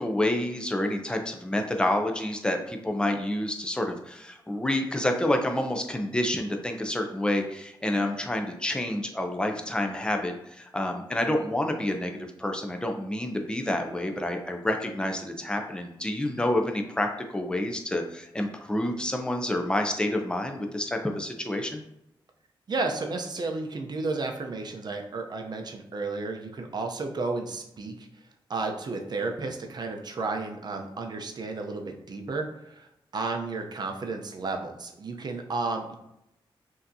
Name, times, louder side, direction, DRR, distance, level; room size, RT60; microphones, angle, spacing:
voice 1, 0.0-21.8, left 1 dB, 10° left, 4 dB, 0.5 m, -28 dB
voice 2, 22.7-28.1 28.5-32.9 33.1-36.0, right 3 dB, 50° right, 3 dB, 0.6 m, -32 dB
5.5 x 2.8 x 2.7 m, 0.83 s
wide cardioid pair, 115°, 9 cm